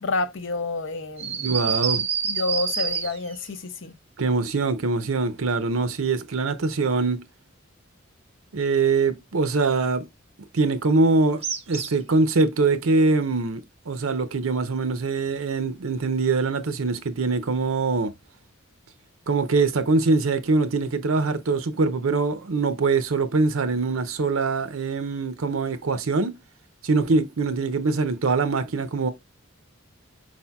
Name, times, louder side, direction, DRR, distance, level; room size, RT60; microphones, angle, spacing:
voice 1, 0.0-1.5 2.3-3.9, left 3 dB, 60° left, 0.7 m, -29 dB
sound 1, 1.2-3.5 11.4-12.1, right 6 dB, 30° right, 0.6 m, -27 dB
voice 2, 1.4-2.0 4.2-7.3 8.5-10.1 10.5-18.1 19.3-26.4 26.8-29.1, right 3 dB, 90° right, 0.7 m, -23 dB
4.9 x 4.3 x 2.3 m
head